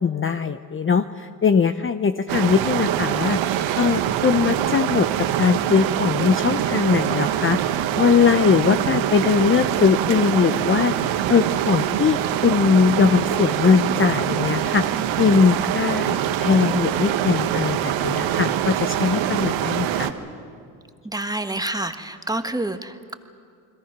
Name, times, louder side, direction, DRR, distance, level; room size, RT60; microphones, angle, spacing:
voice 1, 0.0-3.4 3.8-5.1 5.4-16.1 16.4-20.1, left 6 dB, 25° left, 10 dB, 0.8 m, -20 dB
sound 1, 2.3-20.1, right 11 dB, 70° right, 1.5 m, -24 dB
sound 2, 3.3-18.0, right 5 dB, 85° right, 3.8 m, -45 dB
voice 2, 21.0-23.1, right 2 dB, 10° right, 8 dB, 1.6 m, -28 dB
29.0 x 21.5 x 6.1 m, 2.3 s
supercardioid pair, 75°, 48 cm